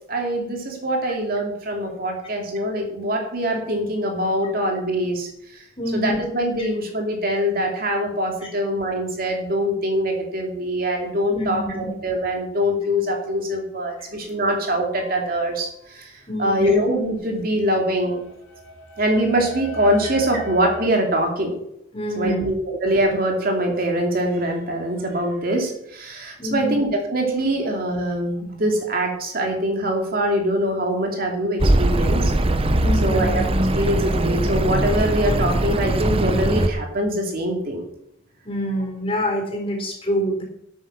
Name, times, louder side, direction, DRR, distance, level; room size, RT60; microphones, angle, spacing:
voice 1, 0.1-5.6 5.9-18.3 19.0-21.6 22.2-32.3 33.0-33.4 33.7-37.9, equal, 45° right, 2 dB, 2.6 m, -23 dB
voice 2, 5.8-6.2 11.3-11.9 16.3-16.7 21.9-22.5 26.4-26.8 32.8-33.2 38.4-40.4, equal, 30° left, 1 dB, 3.9 m, -26 dB
sound 1, 15.0-15.5 17.5-20.9, right 1 dB, 75° left, 3.3 m, -37 dB
Accelerating revving vroom, 31.6-36.7, right 1 dB, 30° right, 0.8 m, -20 dB
12.0 x 8.6 x 6.1 m, 0.74 s
head